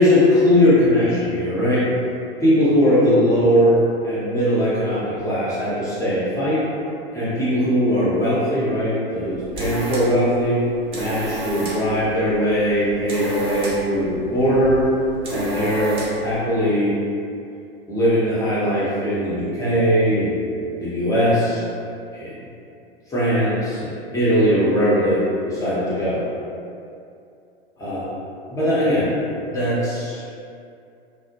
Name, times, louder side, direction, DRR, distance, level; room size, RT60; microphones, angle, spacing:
voice 1, 0.0-1.8 2.4-6.6 7.1-10.6 10.9-14.9 15.3-17.0 17.9-20.5 20.8-21.6 22.1-22.4 23.1-26.3 27.8-28.1 28.5-29.1 29.5-30.2, equal, 10° left, -10 dB, 0.8 m, -20 dB
sound 1, 9.2-16.3, right 2 dB, 20° right, 0.4 m, -32 dB
2.4 x 2.0 x 2.7 m, 2.5 s
figure-of-eight pair, 95°, 31 cm